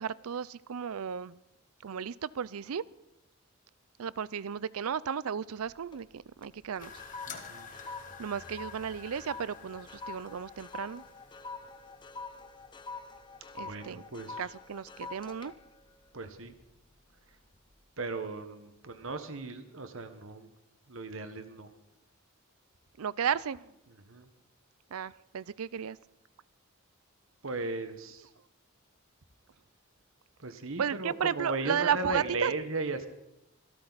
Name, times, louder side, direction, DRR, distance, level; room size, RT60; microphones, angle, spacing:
voice 1, 0.0-1.4 1.8-2.8 4.0-6.9 8.2-11.0 13.5-14.0 14.4-15.5 23.0-23.7 24.9-26.0 30.8-32.5, right 8 dB, 80° right, 20 dB, 0.5 m, -34 dB
sound 1, 5.6-6.1 6.4-17.0 17.4-17.7, left 4 dB, 20° left, 0.8 m, -46 dB
sound 2, 6.8-11.9, left 6 dB, 35° left, 1.3 m, -49 dB
voice 2, 7.3-7.7 13.6-14.4 16.1-16.5 18.0-20.5 20.9-21.7 24.1-24.3 27.4-28.3 30.4-33.1, right 3 dB, 65° right, 9 dB, 1.2 m, -36 dB
25.5 x 13.0 x 4.1 m, 0.90 s
head